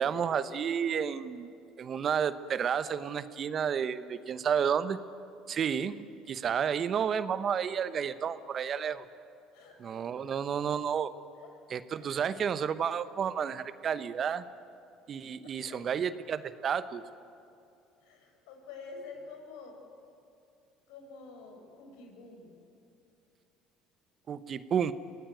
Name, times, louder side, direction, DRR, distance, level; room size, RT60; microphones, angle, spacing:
voice 1, 0.0-1.5 1.8-5.0 5.5-9.0 9.8-11.1 11.7-14.4 15.1-17.0 24.3-24.9, right 7 dB, 45° right, 14 dB, 1.0 m, -31 dB
voice 2, 9.5-10.0 11.4-11.5 15.4-15.8 18.0-19.8 20.9-22.6, left 4 dB, 80° left, 3 dB, 5.3 m, -48 dB
24.0 x 18.0 x 9.3 m, 2.7 s
supercardioid pair, 80°, 0 cm